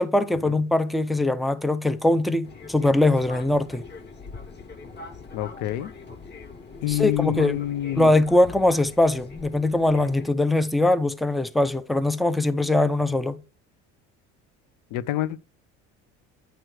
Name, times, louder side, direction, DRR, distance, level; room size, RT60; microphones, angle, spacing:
voice 1, 0.0-3.8 6.9-7.6 8.0-13.4, left 2 dB, ahead, 0.4 m, -22 dB
Fixed-wing aircraft airplane, 2.4-10.3, left 4 dB, 35° left, 1.3 m, -42 dB
voice 2, 5.3-5.9 6.8-8.1 14.9-15.4, left 14 dB, 75° left, 0.6 m, -27 dB
9.1 x 3.1 x 6.2 m
cardioid pair, 110°, 31 cm